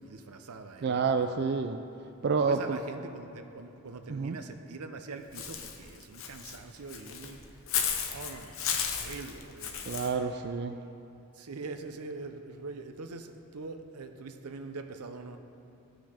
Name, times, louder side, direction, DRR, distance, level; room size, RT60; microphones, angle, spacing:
voice 1, 0.0-1.4 2.4-7.6 8.0-8.6 8.9-10.1 11.3-15.4, right 3 dB, 90° right, 7 dB, 0.7 m, -43 dB
voice 2, 0.8-1.8 2.2-2.8 4.1-4.4 9.9-10.8, right 5 dB, 50° right, 7 dB, 0.3 m, -29 dB
Walk footsteps / Bird, 5.3-10.1, left 7 dB, 65° left, 0.9 m, -34 dB
14.0 x 6.0 x 5.0 m, 2.9 s
head